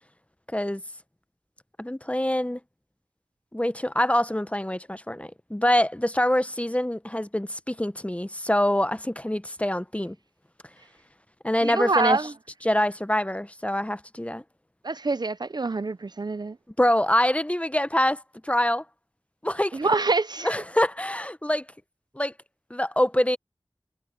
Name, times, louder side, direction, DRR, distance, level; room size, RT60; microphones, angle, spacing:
voice 1, 1.8-2.6 3.5-10.2 11.4-12.2 12.6-14.4 16.8-18.8 19.4-19.8 20.4-21.7 22.1-22.3 22.7-23.4, left 1 dB, 15° left, 0.7 m, -25 dB
voice 2, 11.6-12.3 14.8-16.6 19.7-20.5, right 3 dB, 55° right, 0.5 m, -25 dB
wide cardioid pair, 45°, 8 cm